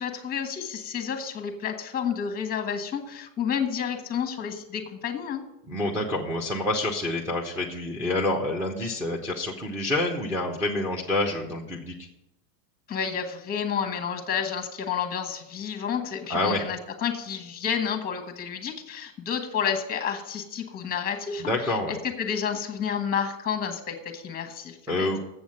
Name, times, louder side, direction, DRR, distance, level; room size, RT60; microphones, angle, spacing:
voice 1, 0.0-5.4 12.9-25.1, left 7 dB, 20° left, 7 dB, 1.4 m, -30 dB
voice 2, 5.7-12.1 16.3-16.6 21.4-22.0 24.9-25.2, left 2 dB, 5° right, 0 dB, 1.0 m, -27 dB
7.7 x 7.1 x 7.7 m, 0.88 s
supercardioid pair, 130°, 49 cm